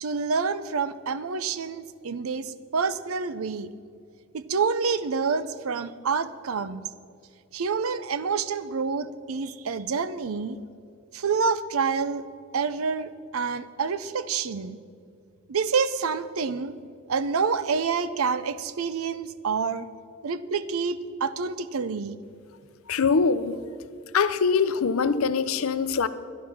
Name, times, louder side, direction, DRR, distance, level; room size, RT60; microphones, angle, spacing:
voice 1, 0.0-3.7 4.3-6.8 7.5-10.6 11.1-12.3 12.5-14.8 15.5-16.7 17.1-19.9 20.2-22.2, right 5 dB, 85° right, 0.6 m, -28 dB
voice 2, 22.9-23.6 24.1-26.1, left 5 dB, 85° left, 0.6 m, -23 dB
11.5 x 10.5 x 6.0 m
head